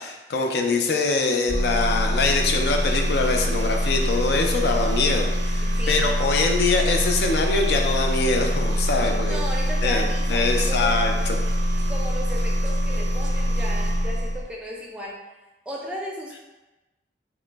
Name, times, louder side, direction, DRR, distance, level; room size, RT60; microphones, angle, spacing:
voice 1, 0.0-9.4 9.8-11.4, left 3 dB, 65° left, 2 dB, 0.4 m, -23 dB
sound 1, 1.5-14.4, equal, 85° right, 0.5 m, -24 dB
voice 2, 5.6-6.1 9.2-10.9 11.9-15.2 15.7-16.4, equal, 5° right, -4 dB, 0.4 m, -34 dB
3.0 x 2.0 x 3.2 m, 1.1 s
head